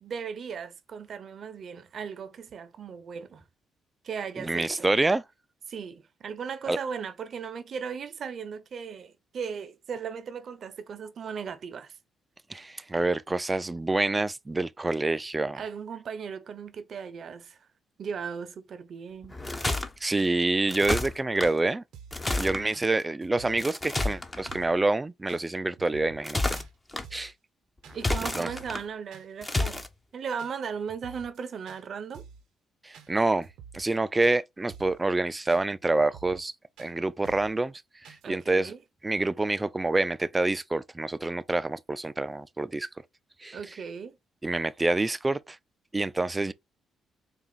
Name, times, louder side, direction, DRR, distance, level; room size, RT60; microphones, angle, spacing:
voice 1, 0.0-3.5 4.0-4.8 5.7-12.0 15.6-17.6 18.0-19.4 27.9-29.8 30.1-32.3 38.2-38.8 43.5-44.2, right 6 dB, 55° right, 0.7 m, -37 dB
voice 2, 4.4-5.2 6.7-6.8 12.5-15.6 20.0-21.8 22.3-26.6 27.1-27.3 28.3-28.5 32.8-33.5 33.7-36.5 36.8-37.7 38.0-38.7 39.0-42.9 43.4-43.6 44.4-45.6 45.9-46.5, right 2 dB, 20° right, 0.4 m, -27 dB
sound 1, 19.2-19.9 20.7-21.5 22.1-22.6 23.6-24.6 26.1-27.0 27.9-28.8 29.4-29.9, left 2 dB, 15° left, 0.7 m, -30 dB
sound 2, 20.2-20.3 20.6-21.2 21.4-21.6 21.9-22.2 22.7-22.9 23.2-23.7 24.0-24.1 24.5-24.8 25.3-25.4 25.8-26.3 26.6-26.7 27.0-27.3 27.8-28.0 28.3-28.8 29.1-29.3 29.6-29.9 30.4-30.5 30.9-31.4 31.7-31.8 32.1-32.4 32.9-33.1 33.4-33.9 34.2-34.4 34.7-35.0 35.5-35.6 36.0-36.5 36.8-36.9 37.2-37.6 38.0-38.3, right 7 dB, 85° right, 0.8 m, -49 dB
4.0 x 2.3 x 3.9 m
cardioid pair, 90°, 0 cm